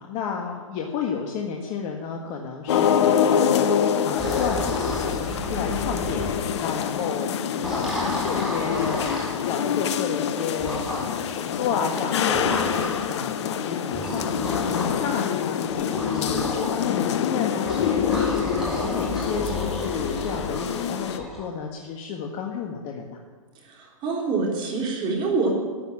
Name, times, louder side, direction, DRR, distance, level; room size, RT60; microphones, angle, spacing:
voice 1, 0.0-3.7 4.0-6.3 6.6-9.0 9.3-12.8 13.1-14.5 15.0-23.2, left 6 dB, 35° left, 1 dB, 1.5 m, -32 dB
sound 1, 2.7-21.2, left 8 dB, 55° left, 1.0 m, -26 dB
sound 2, 4.2-6.5 7.5-9.4 10.6-11.3 12.2-13.1 13.9-15.0 15.7-16.7 17.6-21.4, equal, ahead, 4.2 m, -32 dB
voice 2, 23.6-25.5, right 4 dB, 30° right, 0 dB, 3.6 m, -26 dB
12.5 x 9.3 x 8.8 m, 1.5 s
hypercardioid pair, 125°, 18 cm